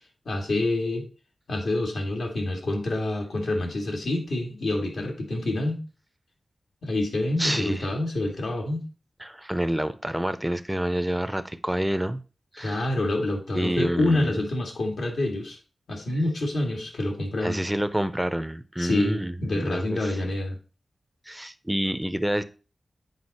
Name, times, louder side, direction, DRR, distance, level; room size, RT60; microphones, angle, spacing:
voice 1, 0.3-1.1 1.5-5.8 6.8-8.9 12.6-15.6 15.9-17.6 18.8-20.5, left 2 dB, 80° left, 2.4 m, -27 dB
voice 2, 7.4-7.8 9.2-12.2 12.5-12.8 13.5-14.4 17.4-20.0 21.3-22.4, right 1 dB, 5° right, 0.5 m, -28 dB
8.0 x 5.1 x 4.2 m
wide cardioid pair, 125°, 0 cm